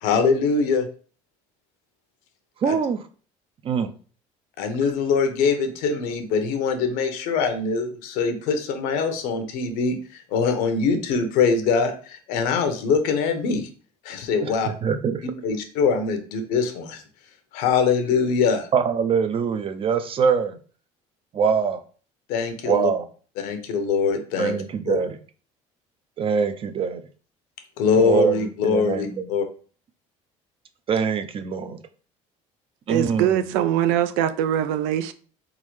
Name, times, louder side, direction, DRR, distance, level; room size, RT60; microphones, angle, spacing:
voice 1, 0.0-0.9 2.7-2.8 4.6-13.7 14.0-14.7 15.2-17.0 17.5-18.7 22.3-22.9 23.4-24.5 24.9-25.0 27.8-29.4, left 5 dB, 80° left, 0.9 m, -23 dB
voice 2, 2.6-3.0 3.6-3.9 14.4-15.2 18.7-20.6 21.3-21.8 22.6-23.1 24.4-25.2 26.2-27.0 27.9-29.2 30.9-31.8 32.9-33.4, right 6 dB, 40° right, 0.5 m, -23 dB
voice 3, 32.9-35.1, right 11 dB, 90° right, 0.5 m, -22 dB
4.1 x 3.8 x 3.1 m
cardioid pair, 105°, 15 cm